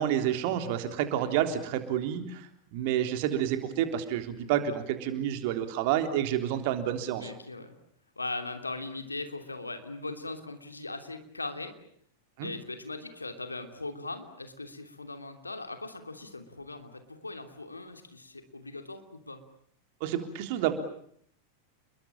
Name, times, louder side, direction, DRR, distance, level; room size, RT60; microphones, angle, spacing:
voice 1, 0.0-7.3 12.4-12.5 20.0-20.7, right 10 dB, 50° right, 8 dB, 3.5 m, -29 dB
voice 2, 7.2-7.8 8.2-11.7 12.4-19.4, left 2 dB, 80° left, 7 dB, 3.0 m, -39 dB
29.5 x 22.0 x 8.9 m, 0.65 s
figure-of-eight pair, 90°, 0 cm